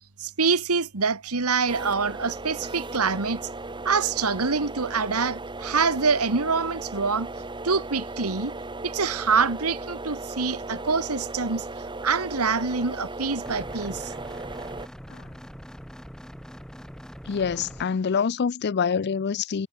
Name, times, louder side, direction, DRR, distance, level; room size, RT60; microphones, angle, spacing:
voice 1, 0.2-3.4 3.9-7.3 7.6-8.6 8.8-11.7 12.0-14.1, right 5 dB, 80° right, 1.8 m, -25 dB
sound 1, 1.7-14.9, right 2 dB, 20° right, 1.9 m, -36 dB
sound 2, 13.5-17.9, equal, 5° left, 7.3 m, -43 dB
voice 2, 17.3-19.7, left 6 dB, 50° left, 0.4 m, -26 dB
head